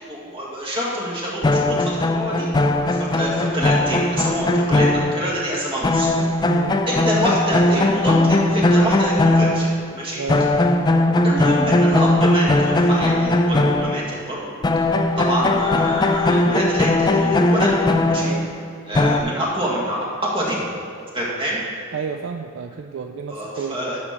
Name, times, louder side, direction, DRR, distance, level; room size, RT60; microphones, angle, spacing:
voice 1, 0.1-6.1 6.9-9.7 9.9-10.2 11.2-14.6 15.2-18.3 18.9-20.7 21.1-21.6 23.3-24.0, equal, 25° right, -4 dB, 1.7 m, -26 dB
sound 1, 1.4-5.6 5.8-10.0 10.3-14.4 14.6-19.2, left 2 dB, 20° left, 0.3 m, -19 dB
voice 2, 6.5-6.8 10.2-10.5 18.2-18.5 21.9-23.8, right 5 dB, 65° right, 6 dB, 0.4 m, -31 dB
11.0 x 6.4 x 3.6 m, 2.5 s
head